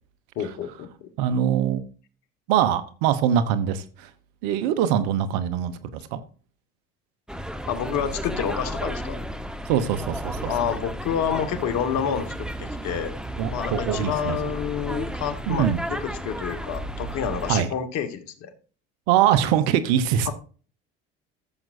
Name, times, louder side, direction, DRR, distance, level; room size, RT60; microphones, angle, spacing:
voice 1, 0.4-1.1 4.9-5.0 7.7-9.2 10.4-13.1 13.5-18.5 20.3-20.4, left 8 dB, 65° left, 1.7 m, -29 dB
voice 2, 1.2-1.8 2.5-4.1 4.4-6.2 9.7-10.5 13.4-14.4 15.5-15.8 17.5-17.7 19.1-20.3, right 9 dB, 75° right, 1.0 m, -23 dB
sound 1, 7.3-17.6, equal, 5° right, 1.2 m, -33 dB
14.0 x 7.5 x 2.6 m
hypercardioid pair, 70°, 30 cm